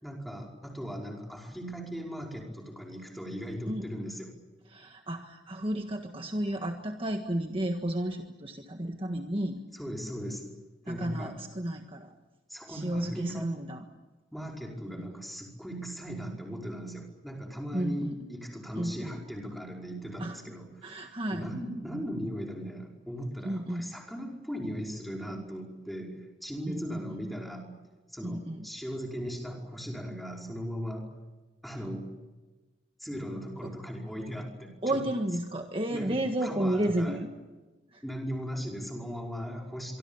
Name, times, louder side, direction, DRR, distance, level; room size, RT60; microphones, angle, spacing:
voice 1, 0.0-4.3 9.7-10.5 10.9-11.4 12.5-13.7 14.3-21.0 21.3-27.7 28.1-31.1 31.6-32.1 33.0-35.0 35.9-37.2 38.0-40.0, equal, ahead, 0 dB, 5.2 m, -38 dB
voice 2, 4.7-9.6 10.9-12.1 12.7-13.8 14.9-15.1 17.7-18.2 18.8-19.2 20.2-20.4 20.8-21.5 23.4-24.0 26.7-27.0 28.2-28.7 33.6-33.7 34.8-37.3 37.9-38.0, right 1 dB, 30° right, 4 dB, 1.6 m, -32 dB
25.5 x 24.5 x 7.3 m, 1.2 s
head